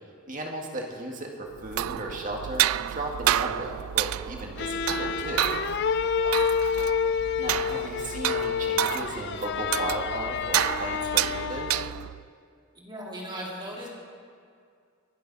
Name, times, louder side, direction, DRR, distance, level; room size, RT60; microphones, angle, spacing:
voice 1, 0.3-5.5 7.4-11.8, right 2 dB, 40° right, 0 dB, 1.9 m, -35 dB
sound 1, 1.6-12.2, right 13 dB, 85° right, 0.3 m, -30 dB
sound 2, 4.6-12.1, left 7 dB, 50° left, 0.4 m, -29 dB
voice 2, 6.2-6.5 12.7-13.9, equal, 20° right, -3 dB, 2.7 m, -38 dB
23.0 x 12.0 x 4.1 m, 2.2 s
head